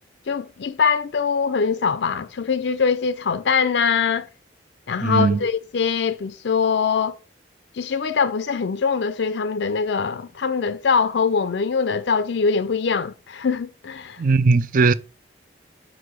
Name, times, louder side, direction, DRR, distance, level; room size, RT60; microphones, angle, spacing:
voice 1, 0.3-4.3 4.9-7.2 7.7-14.2, left 5 dB, 70° left, 0.4 m, -23 dB
voice 2, 5.0-5.4 14.2-14.9, right 4 dB, 45° right, 0.4 m, -18 dB
5.9 x 4.8 x 6.1 m
head